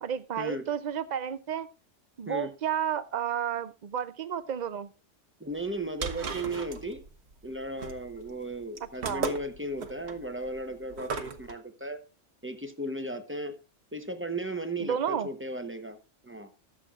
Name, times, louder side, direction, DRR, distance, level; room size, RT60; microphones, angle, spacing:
voice 1, 0.0-1.7 2.2-4.9 9.0-9.3 14.8-15.3, right 9 dB, 45° right, 0.6 m, -31 dB
voice 2, 5.4-7.0 7.4-12.0 12.4-13.5 13.9-16.0 16.2-16.5, right 1 dB, 10° right, 0.9 m, -35 dB
sound 1, 5.6-11.5, right 4 dB, 60° right, 1.3 m, -37 dB
20.0 x 7.3 x 2.4 m
omnidirectional pair, 1.3 m